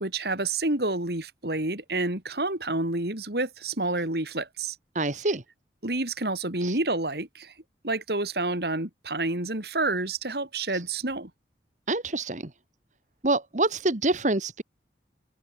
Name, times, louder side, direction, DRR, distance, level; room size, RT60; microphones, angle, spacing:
voice 1, 0.0-4.8 5.8-7.5 7.8-11.3, right 2 dB, 65° right, 3.7 m, -29 dB
voice 2, 5.0-5.4 6.6-6.8 10.7-10.8 11.9-12.5 13.2-14.6, right 2 dB, 45° right, 1.7 m, -26 dB
head